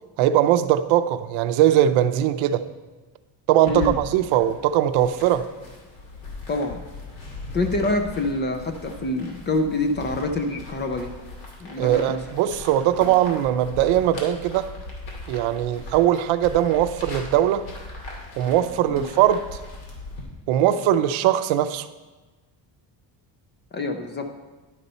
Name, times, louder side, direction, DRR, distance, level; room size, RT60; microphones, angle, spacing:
voice 1, 0.2-2.7 3.5-5.5 11.8-14.7 15.3-17.7 18.4-19.6 20.5-21.9, right 11 dB, 80° right, 0.6 m, -20 dB
sound 1, 3.7-20.2, left 2 dB, 90° left, 2.3 m, -39 dB
voice 2, 6.5-6.8 7.5-11.1 11.6-12.2 18.9-19.0 23.7-24.3, left 2 dB, 25° left, 0.4 m, -26 dB
11.0 x 4.0 x 5.4 m
cardioid pair, 170°, 46 cm